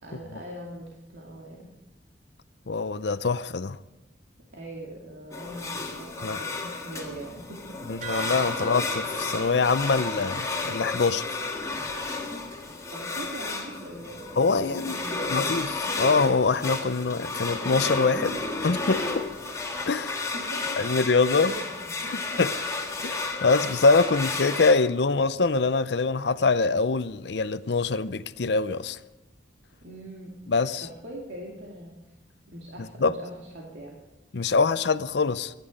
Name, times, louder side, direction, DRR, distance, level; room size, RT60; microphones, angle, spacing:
voice 1, 0.0-1.7 4.5-7.8 12.9-15.4 20.2-20.8 21.5-22.4 29.8-30.4 30.8-31.9 32.5-34.0, right 1 dB, 75° right, 2.4 m, -42 dB
voice 2, 2.7-3.8 6.2-6.4 7.9-11.4 14.4-15.0 15.3-18.3 18.6-19.0 19.9-20.3 20.8-21.5 22.4-22.5 23.0-29.0 30.5-30.9 33.0-33.1 34.3-35.5, left 4 dB, 70° left, 0.6 m, -24 dB
sound 1, 5.3-24.7, left 3 dB, 20° left, 2.0 m, -32 dB
sound 2, 8.0-13.0, right 2 dB, 45° right, 2.3 m, -42 dB
24.5 x 10.5 x 5.2 m
head